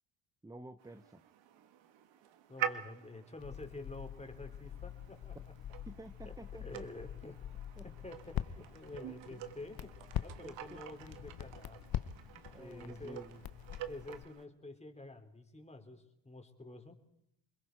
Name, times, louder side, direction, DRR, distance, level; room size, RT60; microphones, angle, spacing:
voice 1, 0.4-1.2 5.9-6.8 7.8-7.9 9.3-9.4 10.4-10.8 12.3-13.5, right 2 dB, 5° right, 12 dB, 0.8 m, -51 dB
sound 1, 0.8-14.5, right 11 dB, 65° right, 1.8 m, -47 dB
voice 2, 2.5-5.4 6.6-7.4 7.8-9.9 10.2-11.8 12.6-13.2 13.9-17.0, left 2 dB, 15° left, 4 dB, 3.7 m, -49 dB
Crackle, 3.4-14.2, left 11 dB, 45° left, 1.0 m, -44 dB
28.5 x 21.5 x 4.7 m, 0.78 s
supercardioid pair, 70°, 49 cm